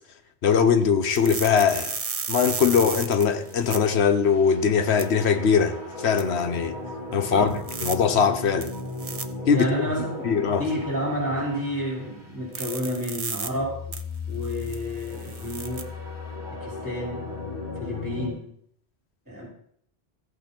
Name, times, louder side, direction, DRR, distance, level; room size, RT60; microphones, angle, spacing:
voice 1, 0.4-1.9 2.3-6.8 7.1-7.5 7.8-8.7 9.5-9.9 10.2-10.6, left 6 dB, 75° left, 1.2 m, -21 dB
sound 1, 1.1-3.8 5.0-5.1 6.2-6.3 7.5-8.0 8.6-9.2 12.5-13.5 13.9-14.0 14.4-15.8, right 5 dB, 40° right, 0.7 m, -33 dB
sound 2, 2.3-12.5 13.5-18.3, left 3 dB, 50° left, 3.9 m, -37 dB
voice 2, 9.5-14.0 14.3-15.9 16.5-17.3 17.8-18.5 19.3-19.5, equal, 15° right, 5.5 m, -30 dB
14.5 x 8.4 x 4.4 m
omnidirectional pair, 1.1 m